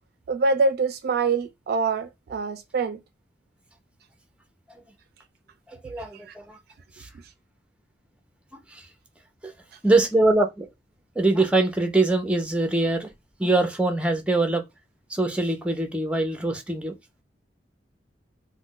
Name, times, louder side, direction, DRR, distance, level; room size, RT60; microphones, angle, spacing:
voice 1, 0.3-3.0 6.3-6.4, right 4 dB, 60° right, 0.3 m, -25 dB
voice 2, 5.7-6.6 7.0-7.1 8.7-8.8 9.4-9.5 9.8-10.7 11.2-13.1 13.4-14.6 15.1-16.9, right 2 dB, 5° right, 0.6 m, -23 dB
2.3 x 2.1 x 3.7 m
head